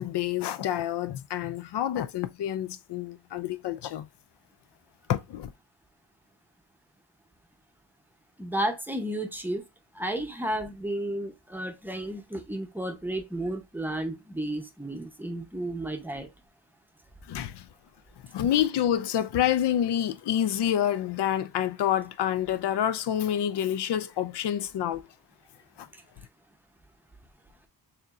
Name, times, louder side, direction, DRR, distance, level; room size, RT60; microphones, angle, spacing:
voice 1, 0.0-4.1 5.1-5.5 17.3-17.7 18.3-25.1 25.8-25.9, left 10 dB, 70° left, 0.5 m, -28 dB
voice 2, 8.4-9.6 9.9-16.3, right 1 dB, 5° right, 0.6 m, -32 dB
6.8 x 2.6 x 2.4 m
wide cardioid pair, 150°, 43 cm